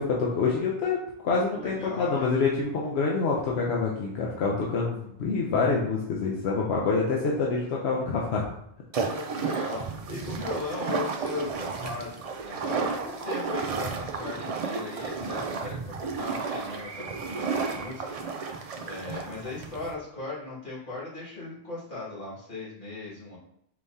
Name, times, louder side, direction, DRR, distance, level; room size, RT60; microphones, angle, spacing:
voice 1, 0.0-8.5, left 4 dB, 85° left, -2 dB, 0.9 m, -26 dB
voice 2, 1.3-2.3 9.0-18.0 18.8-23.4, left 3 dB, 50° left, -9 dB, 2.2 m, -38 dB
sound 1, 8.9-19.9, right 5 dB, 55° right, 0.4 m, -32 dB
4.7 x 3.5 x 2.7 m, 0.73 s
omnidirectional pair, 1.1 m